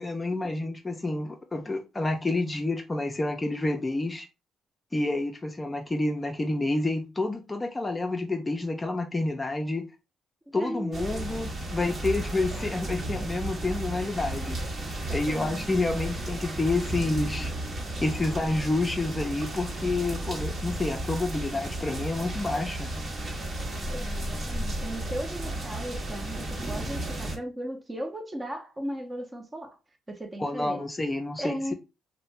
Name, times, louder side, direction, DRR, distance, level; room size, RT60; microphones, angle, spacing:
voice 1, 0.0-4.3 4.9-9.9 10.5-14.6 15.1-17.5 18.0-22.9 30.4-31.7, left 2 dB, 20° left, 0.5 m, -29 dB
voice 2, 10.5-11.4 15.0-15.7 23.9-29.8 30.1-30.8 31.4-31.7, right 1 dB, 20° right, 0.7 m, -36 dB
sound 1, 10.9-27.4, right 1 dB, 40° right, 1.0 m, -33 dB
2.6 x 2.1 x 3.2 m
cardioid pair, 90°, 0 cm